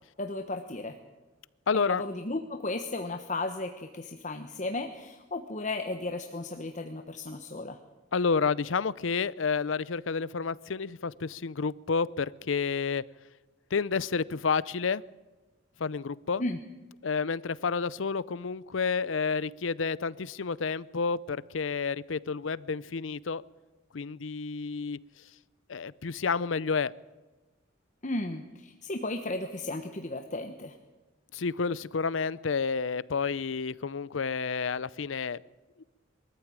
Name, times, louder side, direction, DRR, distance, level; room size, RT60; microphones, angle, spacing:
voice 1, 0.2-1.0 1.7-7.8 16.4-16.6 28.0-30.7, left 2 dB, 40° left, 5 dB, 1.2 m, -34 dB
voice 2, 1.7-2.0 8.1-13.0 13.7-15.0 15.8-16.4 17.0-23.4 23.9-25.0 25.7-26.9 31.3-35.4, left 5 dB, 80° left, 20 dB, 0.6 m, -30 dB
23.0 x 14.0 x 8.8 m, 1.2 s
head